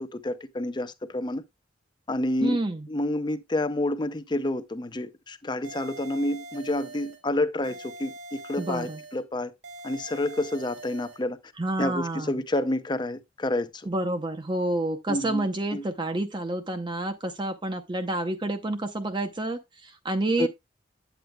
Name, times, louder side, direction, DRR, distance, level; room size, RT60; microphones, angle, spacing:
voice 1, 0.0-1.4 2.1-2.6 2.9-9.5 9.8-11.4 11.8-13.9 15.1-15.5 15.7-15.8 20.4-20.5, left 1 dB, 25° left, 0.6 m, -29 dB
voice 2, 2.4-2.9 8.6-9.0 11.6-12.3 13.9-20.5, right 2 dB, 25° right, 0.7 m, -29 dB
sound 1, 5.6-7.2 7.6-9.2 9.6-11.2, right 2 dB, 85° right, 2.5 m, -43 dB
9.1 x 8.0 x 2.2 m
head